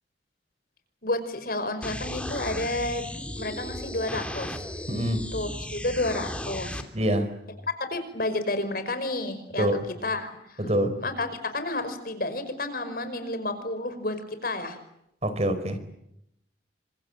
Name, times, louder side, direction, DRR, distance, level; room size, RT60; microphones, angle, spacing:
voice 1, 1.0-3.1 3.4-4.6 5.3-6.8 7.8-9.7 10.0-10.6 11.0-14.8, left 2 dB, 55° left, 10 dB, 5.4 m, -31 dB
sound 1, 1.8-6.8, left 1 dB, 5° left, 2.8 m, -35 dB
voice 2, 4.9-5.2 6.9-7.3 9.6-9.8 10.6-10.9 15.2-15.8, right 1 dB, 35° right, 11 dB, 4.3 m, -25 dB
29.0 x 26.5 x 7.7 m, 0.80 s
head